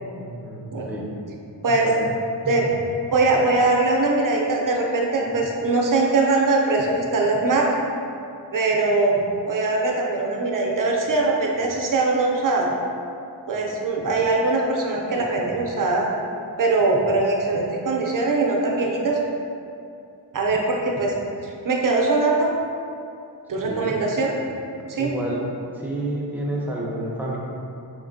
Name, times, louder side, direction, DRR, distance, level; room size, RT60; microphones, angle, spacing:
voice 1, 0.2-1.1 1.7-2.1 2.4-2.7 23.6-24.0 25.0-25.4 25.7-27.4, right 1 dB, 5° right, -4 dB, 0.7 m, -30 dB
voice 2, 3.1-7.7 8.5-12.7 13.5-16.1 16.6-19.2 20.3-21.1 21.4-22.5 23.5-24.4 24.9-25.1, right 3 dB, 50° right, -1 dB, 0.6 m, -21 dB
4.1 x 3.2 x 2.6 m, 2.6 s
wide cardioid pair, 80°, 42 cm